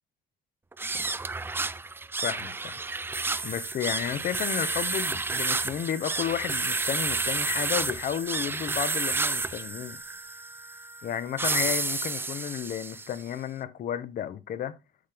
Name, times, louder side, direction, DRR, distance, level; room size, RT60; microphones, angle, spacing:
sound 1, 0.7-13.2, right 3 dB, 15° right, 0.4 m, -31 dB
voice 1, 2.2-2.8 3.4-10.0 11.0-14.7, left 9 dB, 55° left, 1.1 m, -32 dB
8.5 x 5.9 x 3.5 m
cardioid pair, 110°, 17 cm